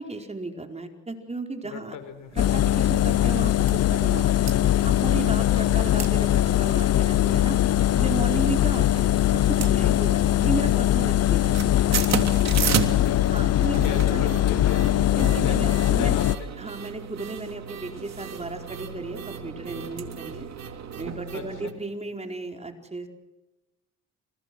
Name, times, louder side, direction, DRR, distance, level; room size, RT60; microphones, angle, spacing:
voice 1, 0.0-2.0 2.3-4.3 4.8-7.6 8.0-9.0 9.5-11.6 13.3-14.3 15.2-16.2 16.6-20.5 20.9-23.1, right 3 dB, 20° right, 4 dB, 4.8 m, -34 dB
voice 2, 1.6-2.4 4.4-5.1 5.4-5.8 8.9-9.2 11.4-11.6 12.7-13.3 13.8-14.9 15.4-16.5 21.3-21.7, left 8 dB, 85° left, 10 dB, 4.9 m, -38 dB
Engine, 2.4-16.4, left 13 dB, 55° left, 0.8 m, -21 dB
sound 1, 2.4-2.6 3.0-3.1 3.3-3.8 4.2-4.5 5.4-5.7 5.9-6.1 6.4-6.5 7.0-7.4 8.1-8.7 9.0-10.4 10.6-10.9 11.2-21.7, right 8 dB, 60° right, 3.2 m, -33 dB
sound 2, 4.7-10.5, left 2 dB, 15° left, 4.9 m, -46 dB
28.5 x 28.5 x 6.3 m, 1.0 s
cardioid pair, 90°, 30 cm